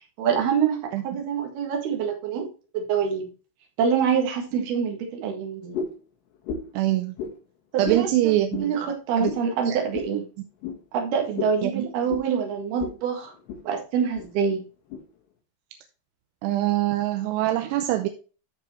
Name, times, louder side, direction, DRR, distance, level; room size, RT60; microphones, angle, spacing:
voice 1, 0.2-2.5 2.7-3.3 3.8-5.8 7.7-8.3 8.6-10.3 10.9-13.3 13.6-14.6, right 7 dB, 70° right, 2 dB, 3.8 m, -25 dB
sound 1, 5.7-6.0 6.4-6.8 7.2-7.3 7.8-8.1 8.5-8.7 9.2-9.5 9.9-10.1 10.6-10.8 11.4-11.6 12.1-12.3 12.8-13.0 13.3-13.6 14.2-14.3 14.9-15.0, left 6 dB, 80° left, 3.8 m, -32 dB
voice 2, 6.7-7.1 7.8-8.7 9.2-9.3 9.6-9.8 11.6-11.9 16.4-18.1, right 14 dB, 85° right, 7 dB, 2.8 m, -24 dB
13.5 x 4.9 x 3.1 m, 0.35 s
omnidirectional pair, 4.8 m